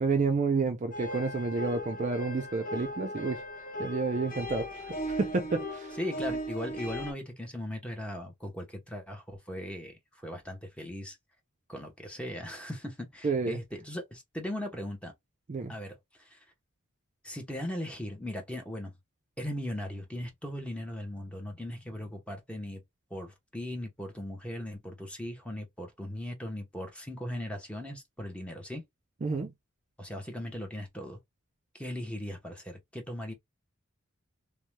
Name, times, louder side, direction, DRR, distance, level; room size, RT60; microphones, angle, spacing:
voice 1, 0.0-3.4 3.8-6.0 13.2-13.6 15.5-15.7 29.2-29.5, right 4 dB, 35° right, 0.4 m, -30 dB
sound 1, 0.9-7.1, equal, 40° left, 1.0 m, -38 dB
voice 2, 6.0-11.2 11.7-15.1 15.7-16.4 17.2-18.9 19.4-22.8 23.1-28.8 30.0-31.2 31.7-33.3, left 1 dB, 5° left, 0.8 m, -38 dB
2.7 x 2.1 x 3.1 m
head